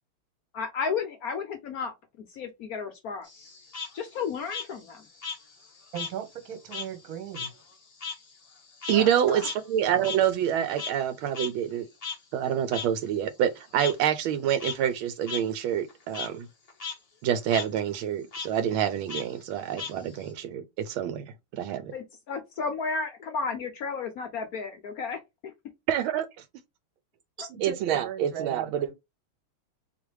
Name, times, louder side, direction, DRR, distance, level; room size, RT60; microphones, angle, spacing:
voice 1, 0.5-1.9 2.3-3.3 3.9-5.1 8.9-9.5 21.9-25.2, left 5 dB, 70° left, 0.8 m, -33 dB
Frog, 3.2-6.2 6.5-11.1 11.3-11.5 12.0-12.2 12.7-12.9 13.8-13.9 14.4-14.8 15.3-15.4 15.8-16.3 16.7-16.9 17.2-17.7 18.3-18.5 19.1-20.3, left 6 dB, 85° left, 0.3 m, -37 dB
voice 2, 5.9-7.6 27.4-28.9, right 9 dB, 50° right, 1.3 m, -37 dB
voice 3, 8.9-11.9 12.3-16.5 17.2-21.3 21.5-21.9 25.9-26.3 27.6-28.9, right 9 dB, 80° right, 1.3 m, -27 dB
4.0 x 3.2 x 3.1 m
omnidirectional pair, 2.3 m